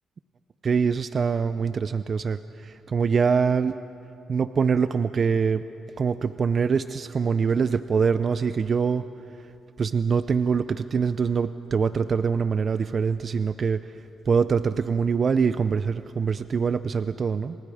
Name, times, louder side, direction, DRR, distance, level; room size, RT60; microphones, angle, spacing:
voice 1, 0.6-3.8 4.3-5.6 6.0-9.1 9.8-13.9 14.3-17.6, right 6 dB, 45° right, 13 dB, 0.5 m, -24 dB
28.5 x 26.0 x 5.0 m, 2.8 s
cardioid pair, 90°, 0 cm